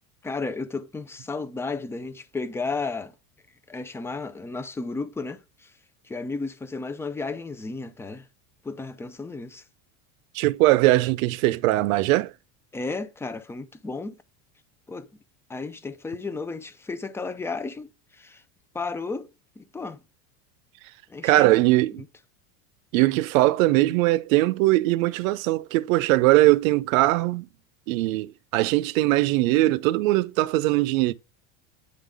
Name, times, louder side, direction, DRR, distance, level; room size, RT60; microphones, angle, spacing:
voice 1, 0.2-3.1 3.7-5.7 6.0-8.3 8.6-9.6 12.7-14.2 14.9-15.1 15.5-18.4 18.7-19.3 19.6-20.0 21.1-21.6 22.0-22.1, left 3 dB, 5° left, 0.4 m, -33 dB
voice 2, 10.3-12.3 21.2-22.0 22.9-27.5 27.9-31.1, right 18 dB, 80° right, 0.6 m, -21 dB
9.0 x 3.8 x 3.5 m
supercardioid pair, 140°, 40 cm